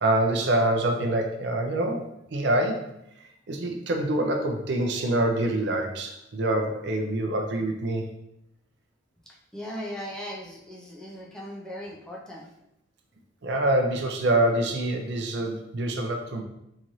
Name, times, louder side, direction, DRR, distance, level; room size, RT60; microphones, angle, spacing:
voice 1, 0.0-2.9 3.5-8.0 13.4-16.4, right 1 dB, 60° right, 3 dB, 0.5 m, -25 dB
voice 2, 9.3-12.5, equal, 5° left, -4 dB, 0.5 m, -38 dB
3.9 x 2.5 x 3.0 m, 0.83 s
head